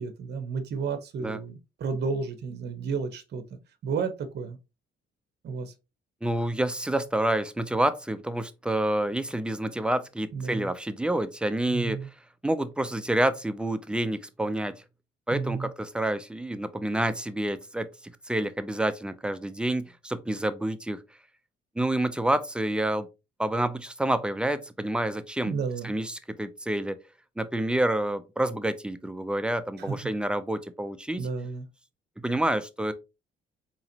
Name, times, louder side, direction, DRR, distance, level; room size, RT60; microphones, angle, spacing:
voice 1, 0.0-3.4 3.8-4.6 5.4-5.7 10.3-10.7 11.7-12.1 15.3-15.7 25.5-25.9 29.8-30.0 31.2-31.7, right 5 dB, 55° right, 0.8 m, -32 dB
voice 2, 6.2-12.0 12.4-14.8 15.3-17.9 18.3-21.0 21.8-23.1 23.4-25.5 25.8-27.0 27.4-31.3 32.2-32.9, right 1 dB, 5° right, 0.4 m, -28 dB
4.0 x 2.9 x 2.7 m
cardioid pair, 90°, 20 cm